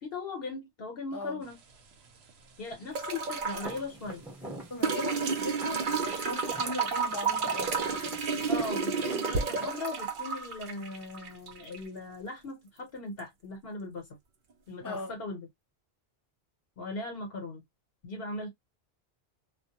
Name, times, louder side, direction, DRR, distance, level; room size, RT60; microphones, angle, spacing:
voice 1, 0.0-1.6 2.6-4.2 8.5-14.1 14.7-15.5 16.8-17.6 18.0-18.5, left 3 dB, 65° left, 1.0 m, -39 dB
voice 2, 1.1-1.4 4.7-8.2 14.8-15.2, left 2 dB, 30° left, 0.4 m, -39 dB
sound 1, 1.4-12.5, right 1 dB, 85° right, 0.9 m, -46 dB
sound 2, 2.9-3.8 4.8-11.8 13.2-13.3, right 5 dB, 60° right, 0.7 m, -31 dB
Walk footsteps, 3.6-9.7, right 1 dB, ahead, 0.8 m, -47 dB
2.2 x 2.1 x 2.8 m
omnidirectional pair, 1.1 m